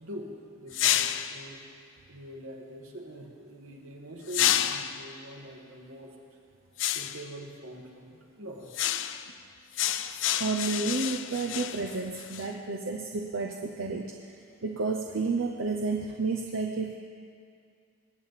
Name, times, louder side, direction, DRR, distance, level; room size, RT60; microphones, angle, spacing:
voice 1, 0.0-1.6 2.1-6.1 6.9-8.8, right 1 dB, 90° right, 0 dB, 1.9 m, -44 dB
sound 1, 0.7-1.4 4.3-5.1 6.8-7.3 8.7-9.3 9.7-12.5, left 11 dB, 60° left, 0.4 m, -29 dB
voice 2, 10.4-14.1 14.3-17.0, right 4 dB, 70° right, 1 dB, 0.7 m, -31 dB
20.5 x 8.8 x 4.1 m, 2.3 s
head